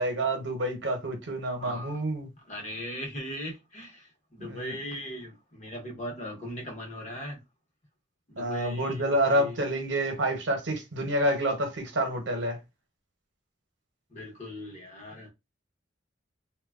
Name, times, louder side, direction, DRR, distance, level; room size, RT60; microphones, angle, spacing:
voice 1, 0.0-2.3 4.4-4.7 8.4-12.6, right 1 dB, 70° right, 0.8 m, -28 dB
voice 2, 1.6-2.0 2.5-7.4 8.3-9.6 14.1-15.3, equal, 40° left, 0.8 m, -39 dB
2.9 x 2.2 x 2.3 m
head